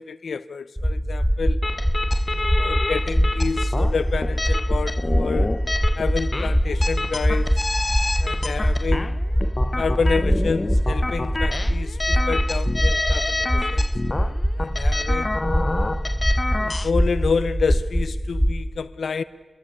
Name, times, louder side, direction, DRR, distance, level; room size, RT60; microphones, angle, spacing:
voice 1, 0.0-1.6 2.3-5.5 6.0-7.6 8.2-9.2 9.8-13.9 14.6-15.3 16.5-19.2, left 5 dB, 85° left, 0.7 m, -29 dB
sound 1, 0.8-18.6, equal, ahead, 1.0 m, -23 dB
sound 2, 1.6-16.9, left 2 dB, 30° left, 0.7 m, -28 dB
24.5 x 21.5 x 8.5 m
wide cardioid pair, 75°, 0 cm